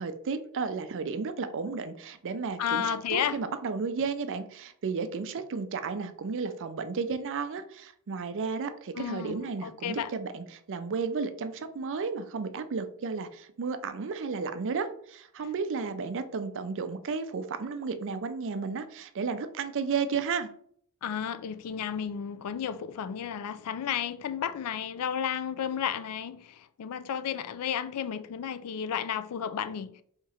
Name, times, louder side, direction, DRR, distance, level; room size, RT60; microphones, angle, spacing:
voice 1, 0.0-20.5, right 5 dB, 60° right, 0.5 m, -33 dB
voice 2, 2.6-3.4 9.0-10.1 21.0-30.0, left 8 dB, 85° left, 0.4 m, -32 dB
3.6 x 2.9 x 4.2 m
head